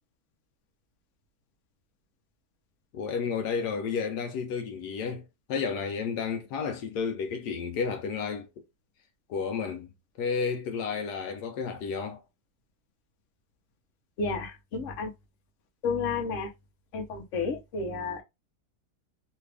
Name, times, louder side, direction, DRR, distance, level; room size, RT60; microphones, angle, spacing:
voice 1, 2.9-8.5 9.3-9.9 10.2-12.2, left 5 dB, 75° left, 1.2 m, -31 dB
voice 2, 14.2-15.1 15.8-16.5 16.9-18.2, left 4 dB, 55° left, 1.0 m, -31 dB
3.3 x 2.4 x 3.3 m
omnidirectional pair, 1.8 m